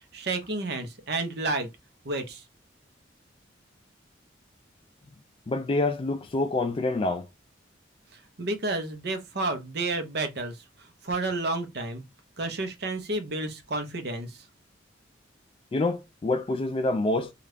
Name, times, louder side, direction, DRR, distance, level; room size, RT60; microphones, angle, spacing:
voice 1, 0.1-1.7 2.0-2.4 8.4-10.6 11.0-12.0 12.4-14.4, right 2 dB, 60° right, 0.8 m, -30 dB
voice 2, 5.5-7.3 15.7-17.3, left 2 dB, 30° left, 0.3 m, -26 dB
2.8 x 2.4 x 3.3 m
head